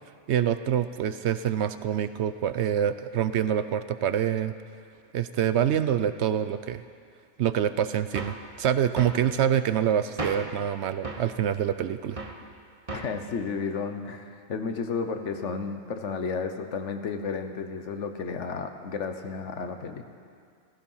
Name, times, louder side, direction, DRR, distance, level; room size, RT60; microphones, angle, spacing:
voice 1, 0.3-4.5 5.1-6.8 7.4-12.2, right 9 dB, 70° right, 12 dB, 0.8 m, -26 dB
sound 1, 8.1-8.5 9.0-9.2 10.2-10.6 11.0-11.3 12.2-12.4 12.9-13.2, right 3 dB, 30° right, 1.2 m, -35 dB
voice 2, 12.9-20.0, left 5 dB, 70° left, 7 dB, 1.3 m, -32 dB
15.5 x 15.0 x 5.6 m, 2.2 s
omnidirectional pair, 1.3 m